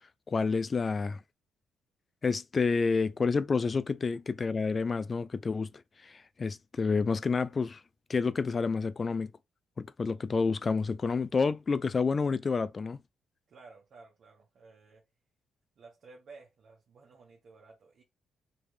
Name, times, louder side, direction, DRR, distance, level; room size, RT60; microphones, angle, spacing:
voice 1, 0.3-1.2 2.2-5.7 6.0-7.8 8.1-9.3 9.8-13.0, left 4 dB, 35° left, 0.3 m, -29 dB
voice 2, 13.5-15.0 15.8-18.0, right 4 dB, 55° right, 1.3 m, -54 dB
3.3 x 3.1 x 3.2 m
cardioid pair, 90°, 0 cm